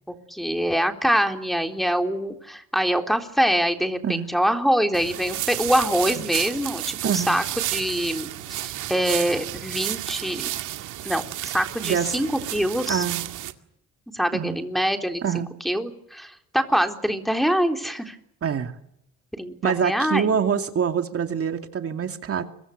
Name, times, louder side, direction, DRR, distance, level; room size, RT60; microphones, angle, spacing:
voice 1, 0.1-7.4 7.7-10.5 11.0-13.1 14.1-15.2 15.6-18.2 19.4-20.3, equal, ahead, 4 dB, 3.7 m, -24 dB
sound 1, 4.9-13.5, right 14 dB, 90° right, 2.2 m, -31 dB
voice 2, 7.0-7.3 11.8-12.1 12.9-13.2 14.3-14.6 15.2-15.5 18.4-18.7 19.6-22.5, right 7 dB, 50° right, 6 dB, 2.5 m, -25 dB
29.5 x 24.0 x 6.7 m, 0.76 s
cardioid pair, 90°, 30 cm